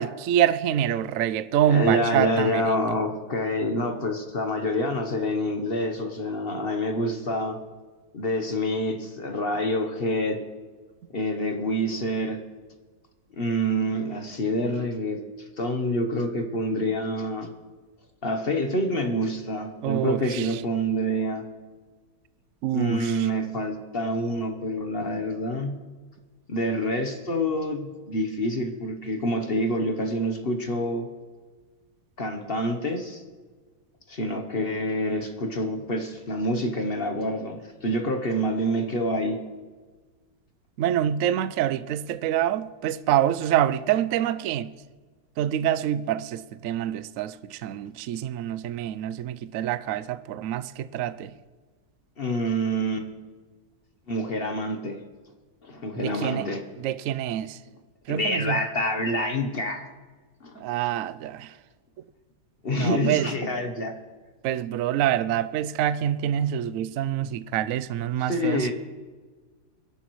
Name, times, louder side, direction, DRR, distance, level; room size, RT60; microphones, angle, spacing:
voice 1, 0.0-3.0 19.8-20.6 22.6-23.3 40.8-44.7 45.4-51.3 56.0-56.5 56.8-57.6 58.1-58.6 60.6-61.5 62.8-63.3 64.4-68.7, right 11 dB, 85° right, 15 dB, 0.7 m, -26 dB
voice 2, 1.7-7.6 8.1-10.5 11.1-12.4 13.4-15.2 15.6-17.5 18.2-21.5 22.7-25.8 26.5-31.1 32.2-33.2 34.1-39.4 52.2-53.1 54.1-55.0 55.6-56.6 58.1-59.9 60.4-60.6 62.6-63.9 68.2-68.7, equal, 40° left, 5 dB, 0.9 m, -27 dB
22.0 x 11.0 x 3.1 m, 1.4 s
omnidirectional pair, 2.0 m